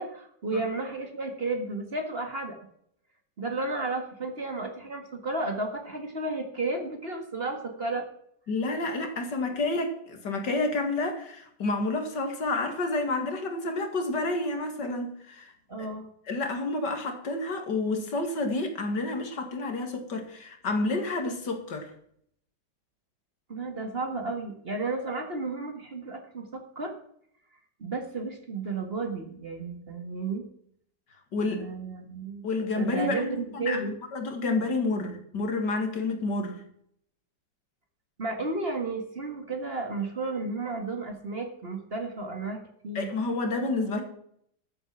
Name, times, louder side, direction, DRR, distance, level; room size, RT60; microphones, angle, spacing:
voice 1, 0.0-2.6 3.4-8.0 15.7-16.1 23.5-26.9 27.8-30.5 31.4-32.4 32.8-33.9 38.2-43.1, right 3 dB, 35° right, 4 dB, 2.0 m, -33 dB
voice 2, 8.5-15.5 15.8-15.9 16.3-21.9 31.3-31.6 32.4-33.8 34.1-36.6 42.9-44.0, left 2 dB, 75° left, 4 dB, 2.7 m, -29 dB
13.0 x 7.9 x 6.3 m, 0.68 s
omnidirectional pair, 1.9 m